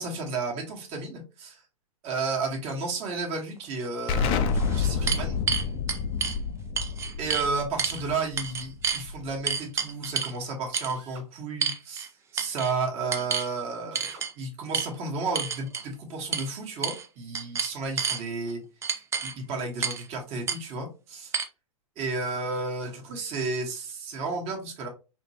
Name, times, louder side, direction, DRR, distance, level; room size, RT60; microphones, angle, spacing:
voice 1, 0.0-1.6 2.0-5.4 7.2-12.1 12.3-18.6 18.9-21.3 22.0-24.9, right 3 dB, 35° right, -1 dB, 1.6 m, -32 dB
sound 1, 3.8-3.9 4.5-6.4 6.8-7.5 7.8-8.0 8.4-9.0 9.5-10.4 10.7-10.9 11.6-12.1 12.4-12.7 13.1-13.5 13.9-14.3 14.7-14.9 15.3-15.9 16.3-16.5 16.8-17.1 17.3-18.2 18.8-19.3 19.8-20.0 20.5-20.6 21.3-21.4, right 6 dB, 15° right, 0.5 m, -29 dB
Explosion, 4.1-9.5, left 5 dB, 30° left, 0.6 m, -29 dB
Drill, 4.9-5.4 7.9-8.4 10.9-11.3 13.9-14.3, right 4 dB, 55° right, 1.0 m, -50 dB
5.0 x 3.0 x 2.9 m, 0.30 s
hypercardioid pair, 110°, 19 cm